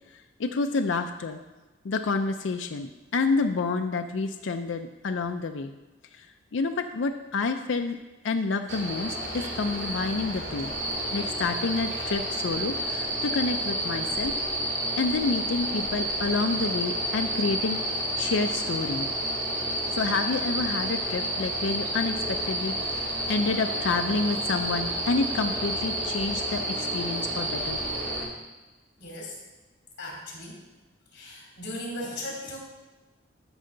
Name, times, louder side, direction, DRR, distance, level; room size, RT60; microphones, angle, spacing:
voice 1, 0.4-1.4 1.8-5.8 6.2-6.3 6.5-8.0 8.2-10.7 11.1-14.3 15.0-19.1 19.9-27.8, left 4 dB, 80° left, 6 dB, 0.5 m, -29 dB
sound 1, 8.7-28.2, right 1 dB, 70° right, 2.0 m, -30 dB
voice 2, 29.0-29.4 30.0-30.6 31.1-32.6, left 1 dB, 60° left, -3 dB, 3.1 m, -37 dB
13.0 x 5.5 x 3.8 m, 1.1 s
head